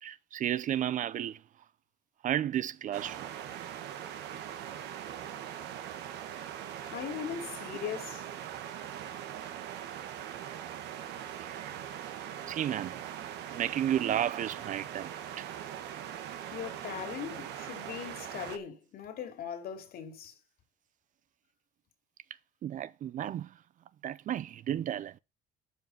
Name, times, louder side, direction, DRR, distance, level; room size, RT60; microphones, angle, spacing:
voice 1, 0.0-1.4 2.2-3.3 11.4-11.7 12.5-13.0 13.5-15.5 22.6-23.5 24.0-25.2, right 11 dB, 50° right, 0.5 m, -33 dB
sound 1, 2.9-18.6, right 10 dB, 85° right, 1.4 m, -41 dB
voice 2, 6.9-8.3 16.5-20.4, left 8 dB, 65° left, 2.6 m, -39 dB
12.0 x 5.6 x 5.5 m
cardioid pair, 110°, 17 cm